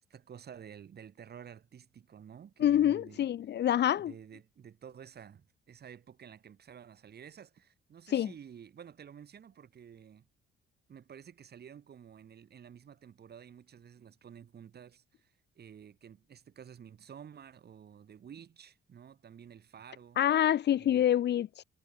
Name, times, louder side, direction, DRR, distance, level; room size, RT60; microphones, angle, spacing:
voice 1, 0.1-3.3 4.0-10.3 10.9-20.2 20.7-21.1, right 8 dB, 55° right, 4.2 m, -51 dB
voice 2, 2.6-4.1 8.1-8.3 20.2-21.6, left 11 dB, 60° left, 0.8 m, -26 dB
cardioid pair, 90°, 20 cm